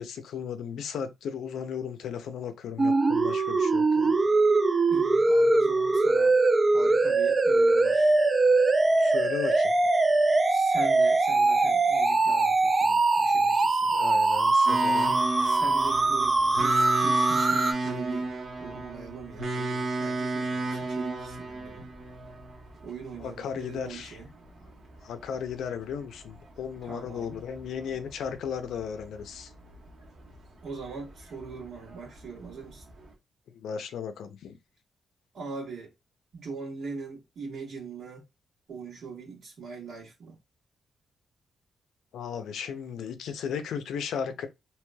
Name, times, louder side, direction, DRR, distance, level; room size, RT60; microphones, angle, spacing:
voice 1, 0.0-4.2 9.0-9.7 13.9-15.2 23.2-24.2 25.0-29.5 33.5-34.6 42.1-44.5, left 7 dB, 90° left, 0.5 m, -35 dB
sound 1, 2.8-17.7, right 3 dB, 25° right, 0.4 m, -22 dB
voice 2, 4.9-6.4 6.7-8.1 10.5-13.9 15.4-18.3 18.6-21.9 22.8-24.3 26.8-27.4 30.6-32.8 35.3-35.9 36.3-38.2 38.7-40.3, right 4 dB, 65° right, 1.5 m, -41 dB
sound 2, 14.7-33.1, right 2 dB, 50° right, 1.1 m, -35 dB
3.1 x 2.8 x 2.2 m
cardioid pair, 125°, 0 cm